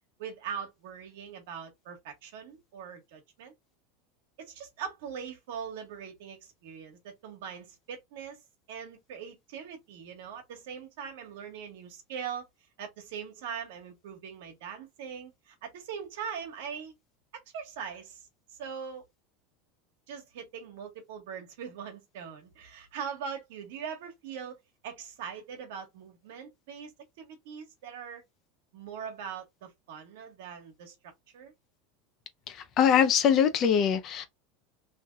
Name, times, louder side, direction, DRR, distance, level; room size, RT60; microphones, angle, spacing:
voice 1, 0.2-3.5 4.4-8.4 8.7-12.5 12.8-16.9 17.5-18.3 18.6-19.0 20.1-24.6 24.8-28.2 28.7-31.5, right 7 dB, 75° right, 1.3 m, -41 dB
voice 2, 32.5-34.3, left 8 dB, 35° left, 0.6 m, -23 dB
3.1 x 2.8 x 2.3 m
supercardioid pair, 160°, 0 cm